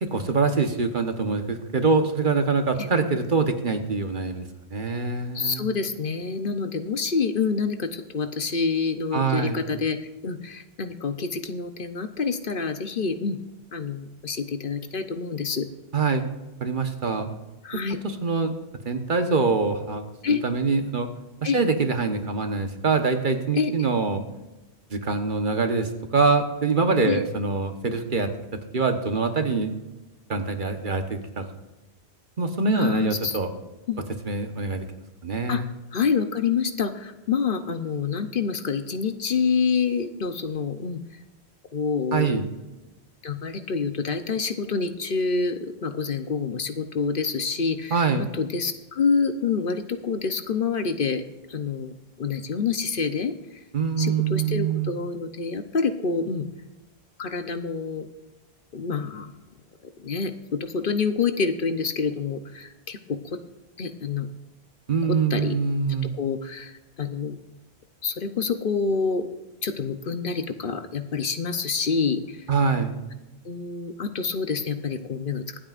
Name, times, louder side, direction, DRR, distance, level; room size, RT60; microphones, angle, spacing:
voice 1, 0.0-4.4 4.7-5.7 9.1-9.6 15.9-16.2 16.6-17.3 18.0-18.5 18.8-21.1 21.4-24.2 24.9-28.3 28.7-29.7 30.3-31.4 32.4-33.5 34.2-34.9 35.2-35.7 42.1-42.5 47.9-48.3 53.7-54.9 64.9-66.1 72.5-72.9, right 4 dB, 50° right, 6 dB, 1.3 m, -24 dB
voice 2, 5.3-10.0 10.2-13.4 13.7-15.7 17.6-18.0 20.2-20.4 21.4-21.6 23.5-23.7 27.0-27.2 32.7-33.4 33.9-34.0 35.5-35.6 35.9-41.0 41.7-42.4 43.2-51.2 51.5-51.9 52.2-53.3 54.0-56.5 57.2-58.1 58.7-59.3 60.0-63.2 63.8-64.3 65.1-65.5 66.2-66.7 67.0-67.4 68.0-69.3 69.6-72.5 73.4-75.6, left 5 dB, 55° left, 9 dB, 0.9 m, -27 dB
24.5 x 8.7 x 2.5 m, 1.1 s
omnidirectional pair, 1.1 m